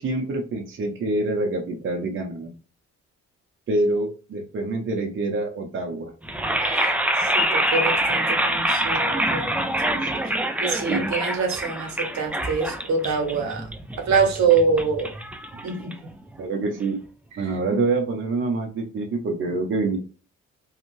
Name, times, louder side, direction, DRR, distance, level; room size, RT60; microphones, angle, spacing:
voice 1, 0.0-2.5 3.7-6.1 10.0-10.1 10.7-11.1 16.4-17.0 17.4-20.0, right 2 dB, 40° right, 2 dB, 0.7 m, -26 dB
sound 1, 6.2-16.3, right 1 dB, 5° right, 0.3 m, -25 dB
voice 2, 6.6-9.6 10.6-13.7 14.0-15.1 15.6-15.9 16.6-16.7 17.4-17.5, right 5 dB, 65° right, 4 dB, 0.9 m, -25 dB
2.6 x 2.4 x 3.0 m, 0.36 s
cardioid pair, 90°, 30 cm